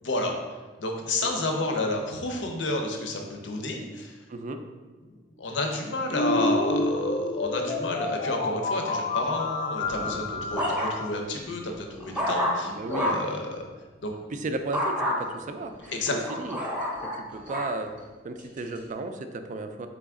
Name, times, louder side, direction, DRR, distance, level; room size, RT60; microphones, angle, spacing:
voice 1, 0.8-4.2 5.1-13.7 14.0-14.1 15.9-16.2, left 2 dB, 80° left, 3 dB, 0.7 m, -30 dB
voice 2, 4.3-4.6 12.6-13.2 14.3-15.7 16.1-16.6 17.0-17.9 18.2-19.9, right 2 dB, 45° right, 7 dB, 0.3 m, -34 dB
sound 1, 6.1-11.2, left 2 dB, 45° left, 0.3 m, -29 dB
sound 2, 9.9-11.2 11.7-13.4 14.7-15.2 15.8-17.8 18.4-18.8, left 1 dB, 5° right, 0.7 m, -29 dB
4.0 x 3.5 x 3.6 m, 1.3 s
head